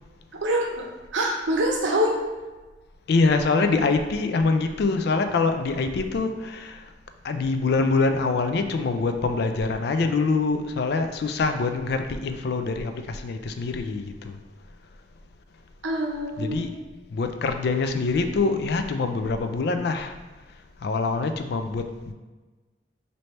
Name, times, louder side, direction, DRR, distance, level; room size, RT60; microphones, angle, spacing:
voice 1, 1.1-2.2 15.8-16.7, right 1 dB, 80° right, 0 dB, 0.7 m, -24 dB
voice 2, 3.1-6.9 7.2-14.4 16.4-16.8 17.1-20.2 20.8-22.1, left 3 dB, 60° left, 7 dB, 0.3 m, -24 dB
3.2 x 2.7 x 4.3 m, 1.2 s
head